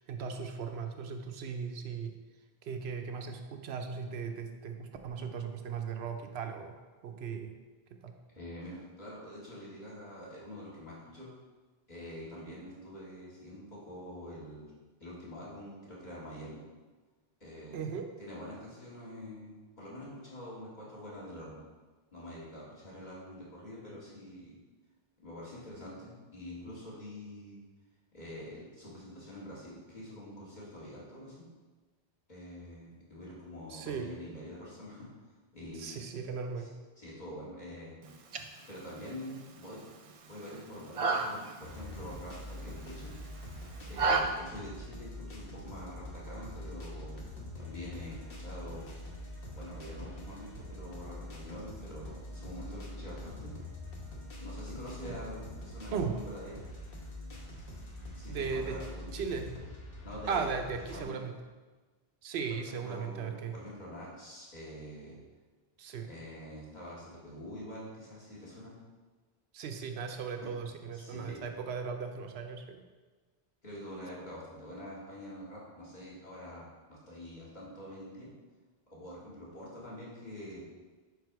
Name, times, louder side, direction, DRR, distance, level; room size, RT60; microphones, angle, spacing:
voice 1, 0.0-2.1 2.6-6.8 7.0-7.6 8.0-8.1 17.7-18.1 33.7-34.1 35.7-36.7 55.0-55.2 55.9-56.1 58.3-58.8 59.1-59.5 60.3-61.3 62.2-63.6 65.8-66.1 69.5-72.8, right 6 dB, 85° right, 5 dB, 0.9 m, -37 dB
voice 2, 8.3-11.3 11.9-14.7 15.0-16.6 17.4-17.9 18.2-21.6 22.1-24.6 25.2-27.6 28.1-31.5 32.3-35.1 35.5-36.0 37.0-38.0 38.7-39.8 40.3-43.2 43.9-47.2 47.6-48.9 49.5-53.5 54.4-56.6 58.1-59.1 60.0-60.5 60.9-61.2 62.5-65.2 66.1-68.7 70.4-70.5 70.9-71.4 73.6-78.3 78.9-80.6, left 1 dB, 45° left, -7 dB, 2.0 m, -46 dB
sound 1, 38.0-44.2, right 4 dB, 55° right, 0.4 m, -35 dB
sound 2, 41.6-61.0, left 1 dB, 60° left, 1.2 m, -44 dB
5.1 x 4.8 x 4.6 m, 1.3 s
omnidirectional pair, 1.1 m